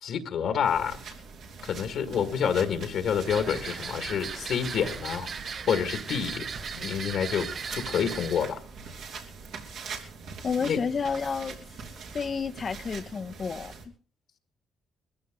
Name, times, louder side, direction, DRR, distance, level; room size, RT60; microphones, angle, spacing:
voice 1, 0.0-1.0 1.6-5.3 5.7-6.5 6.7-8.6 10.6-10.8, left 7 dB, 75° left, 2.1 m, -28 dB
sound 1, 0.6-13.9, right 5 dB, 80° right, 3.4 m, -43 dB
sound 2, 3.2-8.5, right 6 dB, 50° right, 0.9 m, -37 dB
voice 2, 10.4-11.6 12.1-13.7, left 5 dB, 45° left, 0.8 m, -30 dB
21.0 x 15.0 x 3.9 m
cardioid pair, 90°, 0 cm